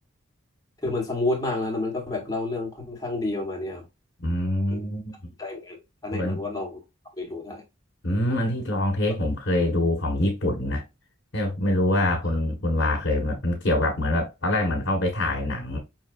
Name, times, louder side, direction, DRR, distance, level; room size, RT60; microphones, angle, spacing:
voice 1, 0.8-3.8 4.7-4.8 5.4-5.8 6.0-6.8 7.2-7.6, left 2 dB, 15° left, 1.3 m, -29 dB
voice 2, 4.2-5.1 6.1-6.4 8.0-10.8 11.3-15.8, left 1 dB, 60° left, 1.4 m, -25 dB
5.7 x 3.1 x 2.5 m
head